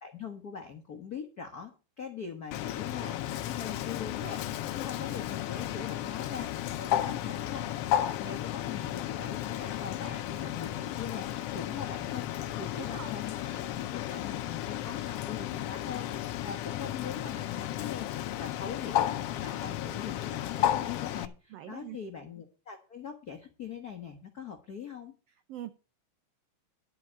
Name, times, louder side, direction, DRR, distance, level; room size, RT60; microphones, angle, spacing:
voice 1, 0.0-18.1 18.4-19.1 19.4-25.1, left 6 dB, 70° left, 0.9 m, -42 dB
Bird, 2.5-21.3, left 12 dB, 85° left, 1.3 m, -33 dB
voice 2, 21.5-22.0 25.5-25.7, right 12 dB, 90° right, 1.3 m, -42 dB
11.5 x 4.7 x 8.4 m
omnidirectional pair, 3.5 m